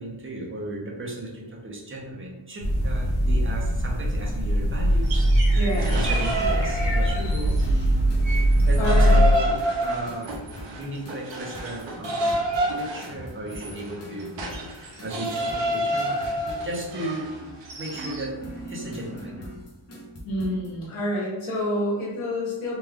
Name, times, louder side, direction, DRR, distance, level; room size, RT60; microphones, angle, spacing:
voice 1, 0.0-5.6 5.9-7.7 8.7-9.4 9.8-10.3 10.8-12.5 12.8-14.4 14.6-16.2 16.6-17.3 17.8-19.4, right 1 dB, 25° right, -2 dB, 0.6 m, -35 dB
sound 1, 2.6-9.3, equal, 65° left, 0.9 m, -21 dB
sound 2, 4.9-7.7 8.0-18.3, right 1 dB, 60° right, 0.7 m, -29 dB
voice 2, 5.5-6.0 8.8-9.3 20.2-22.8, left 1 dB, 90° left, -5 dB, 1.2 m, -28 dB
sound 3, 7.6-20.7, equal, 35° left, 0.6 m, -42 dB
3.0 x 2.3 x 3.4 m, 1.0 s
wide cardioid pair, 180°, 49 cm